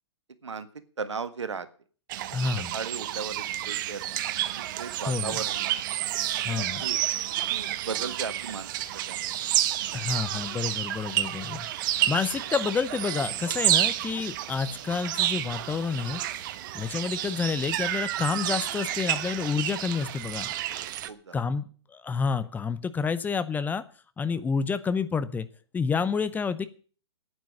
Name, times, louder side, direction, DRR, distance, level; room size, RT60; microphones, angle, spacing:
voice 1, 1.0-1.7 2.7-5.8 6.5-7.0 7.4-8.7 9.1-9.3 16.7-16.9 20.7-21.4 24.2-24.4, right 5 dB, 85° right, 12 dB, 1.6 m, -37 dB
sound 1, 2.1-21.1, right 13 dB, 45° right, 1.0 m, -30 dB
voice 2, 2.3-2.7 5.1-5.3 6.4-6.8 9.9-11.7 12.1-16.2 16.7-20.5 21.3-21.6 21.9-23.8 24.2-25.5 25.7-26.7, left 5 dB, 10° left, 14 dB, 0.8 m, -29 dB
9.3 x 9.3 x 10.0 m, 0.42 s
hypercardioid pair, 125°, 15 cm